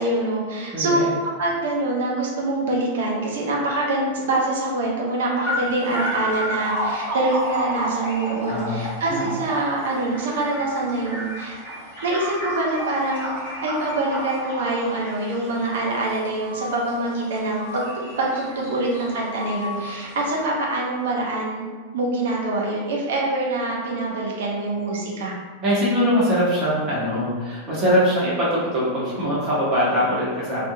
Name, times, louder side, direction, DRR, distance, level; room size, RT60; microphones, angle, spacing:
voice 1, 0.0-11.6 12.0-13.3 13.6-17.9 18.2-21.7 21.9-25.3, right 2 dB, 60° right, -2 dB, 0.6 m, -25 dB
voice 2, 0.7-1.1 8.5-8.8 9.1-9.3 25.6-30.7, equal, 30° right, -8 dB, 1.0 m, -22 dB
sound 1, 5.4-20.4, equal, 75° right, 1.1 m, -32 dB
2.7 x 2.2 x 2.7 m, 1.4 s
figure-of-eight pair, 90°, 0 cm